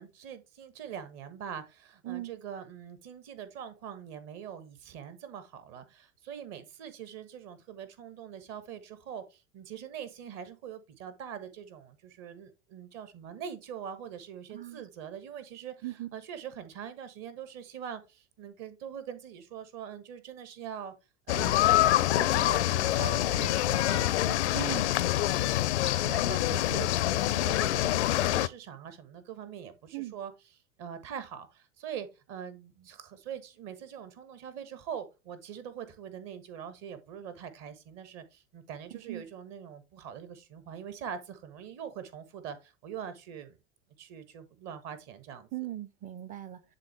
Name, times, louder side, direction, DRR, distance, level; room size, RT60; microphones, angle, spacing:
voice 1, 0.0-20.9 21.3-24.8 25.1-25.6 25.8-30.3 30.8-43.6 44.0-45.5, right 8 dB, 40° right, 1.4 m, -43 dB
voice 2, 14.5-14.8 15.8-16.1 24.5-24.9 29.9-30.2 38.9-39.3 45.5-46.6, right 15 dB, 20° right, 0.6 m, -38 dB
sound 1, 21.3-28.5, left 14 dB, 60° left, 0.5 m, -26 dB
10.5 x 3.7 x 3.3 m
figure-of-eight pair, 85°, 39 cm